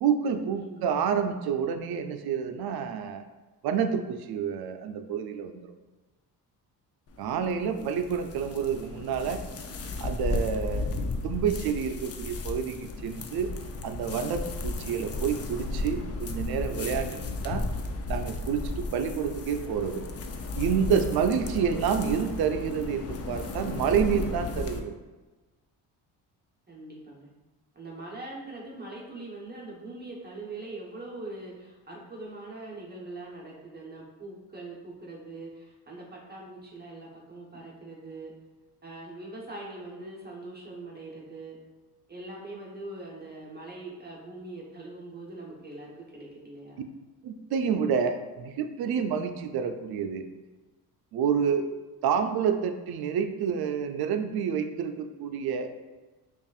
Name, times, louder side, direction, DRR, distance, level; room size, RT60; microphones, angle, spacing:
voice 1, 0.0-3.2 3.6-5.7 7.2-9.4 10.0-13.5 13.8-17.2 17.4-17.6 18.1-20.0 20.6-25.0 47.2-50.2 51.1-51.7 52.0-55.7, right 7 dB, 65° right, 8 dB, 0.5 m, -28 dB
voice 2, 0.5-0.9 7.7-8.0 26.7-27.3 27.7-38.3 38.8-41.6 42.1-46.8, right 2 dB, 25° right, -3 dB, 0.9 m, -42 dB
sound 1, 7.1-24.8, left 2 dB, 40° left, 0.5 m, -34 dB
5.3 x 2.5 x 2.4 m, 1.2 s
cardioid pair, 90°, 41 cm